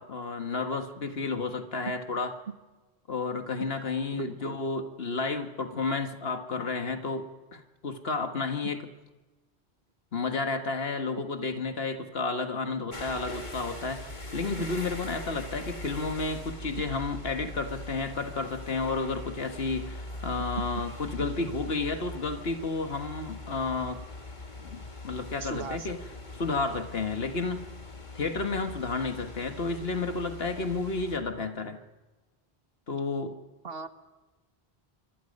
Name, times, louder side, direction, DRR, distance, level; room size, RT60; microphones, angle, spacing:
voice 1, 0.0-2.3 3.1-8.8 10.1-24.0 24.6-26.0 26.4-27.7 28.1-31.8 32.9-33.4, left 3 dB, 70° left, 7 dB, 1.8 m, -31 dB
voice 2, 4.1-4.6 8.6-8.7 16.8-16.9 25.4-26.2 33.6-33.9, right 5 dB, 70° right, 9 dB, 1.5 m, -38 dB
sound 1, 12.9-31.2, left 2 dB, 45° left, 2.3 m, -41 dB
26.0 x 24.0 x 5.4 m, 1.2 s
omnidirectional pair, 1.1 m